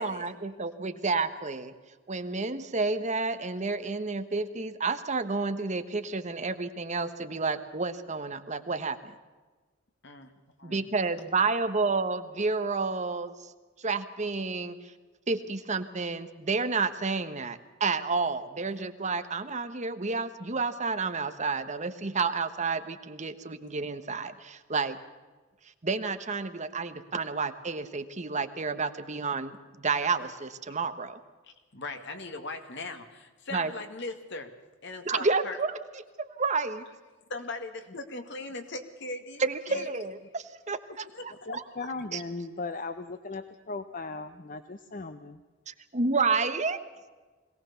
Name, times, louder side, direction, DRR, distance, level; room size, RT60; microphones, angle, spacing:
voice 1, 0.0-1.7 2.1-9.1 10.6-13.5 13.8-14.9 15.3-25.0 25.8-31.2 33.5-33.7 35.0-35.8 36.2-36.8 39.4-40.8 41.5-41.6 42.1-42.2 45.7-46.8, right 4 dB, 35° right, 10 dB, 1.2 m, -30 dB
voice 2, 31.4-34.5 34.8-35.6 37.3-39.4 39.7-39.9 41.1-41.6, left 2 dB, 60° left, 6 dB, 2.3 m, -39 dB
voice 3, 41.8-45.4, left 3 dB, 45° left, 9 dB, 0.8 m, -37 dB
22.0 x 18.0 x 7.0 m, 1.3 s
head